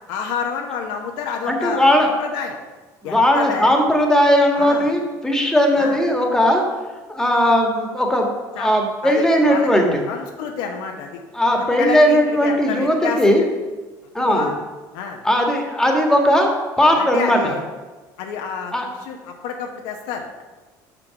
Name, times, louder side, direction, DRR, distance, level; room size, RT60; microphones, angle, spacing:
voice 1, 0.1-2.6 3.0-3.7 4.5-4.9 5.8-6.0 8.5-8.7 9.0-9.7 10.1-11.2 11.8-13.3 14.3-14.6 14.9-15.2 17.0-17.6 18.2-20.4, left 6 dB, 80° left, 2 dB, 0.8 m, -29 dB
voice 2, 1.5-2.1 3.0-6.6 7.1-8.3 8.6-10.0 11.3-13.4 14.2-14.5 15.2-16.5 16.8-17.5 18.7-18.9, equal, 5° left, 1 dB, 1.6 m, -17 dB
5.9 x 5.4 x 5.8 m, 1.3 s
supercardioid pair, 90°, 9 cm